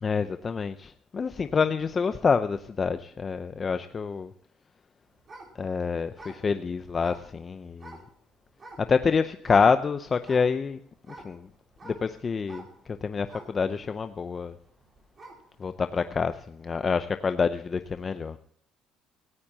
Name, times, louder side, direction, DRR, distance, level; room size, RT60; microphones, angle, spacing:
voice 1, 0.0-4.3 5.6-8.0 8.9-10.8 11.1-11.5 11.8-14.6 15.6-18.4, left 5 dB, 30° left, 10 dB, 0.6 m, -27 dB
sound 1, 5.2-8.1 8.6-9.1 9.4-9.8 10.2-15.5 16.0-16.1, right 2 dB, 30° right, 4.8 m, -48 dB
17.5 x 15.0 x 2.8 m, 0.65 s
cardioid pair, 125°, 0 cm